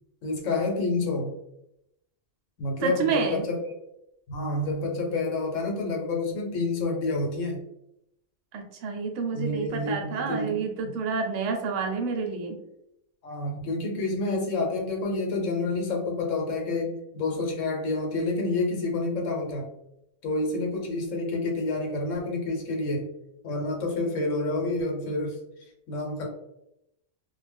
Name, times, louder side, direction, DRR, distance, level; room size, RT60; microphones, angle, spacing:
voice 1, 0.2-1.3 2.6-3.6 4.3-7.6 9.3-10.5 10.8-11.0 13.2-19.7 20.2-23.1 23.4-25.4 25.9-26.3, left 2 dB, 75° left, 0 dB, 1.1 m, -28 dB
voice 2, 2.8-3.5 8.5-12.6, right 5 dB, 70° right, 3 dB, 0.9 m, -29 dB
2.4 x 2.1 x 3.3 m, 0.81 s
omnidirectional pair, 1.4 m